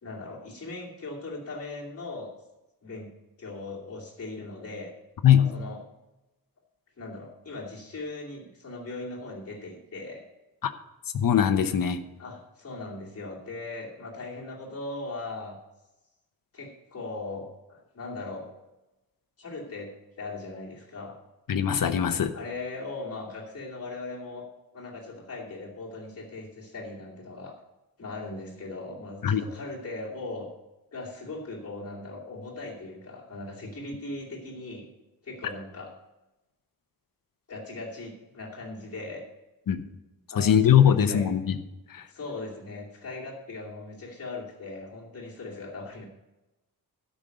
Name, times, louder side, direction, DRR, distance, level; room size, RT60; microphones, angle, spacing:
voice 1, 0.0-2.3 2.8-3.1 3.4-4.9 5.4-5.8 7.0-10.2 12.2-15.6 16.5-18.5 19.4-21.2 22.3-24.5 24.7-27.5 28.0-30.5 30.9-34.9 35.2-35.9 37.5-39.2 40.3-41.3 42.1-46.1, left 2 dB, 40° left, -4 dB, 2.6 m, -39 dB
voice 2, 11.1-12.0 21.5-22.3 29.2-29.4 39.7-39.8 40.4-41.6 41.9-42.1, left 9 dB, 65° left, 10 dB, 0.9 m, -21 dB
12.5 x 5.3 x 7.7 m, 1.0 s
wide cardioid pair, 150°, 37 cm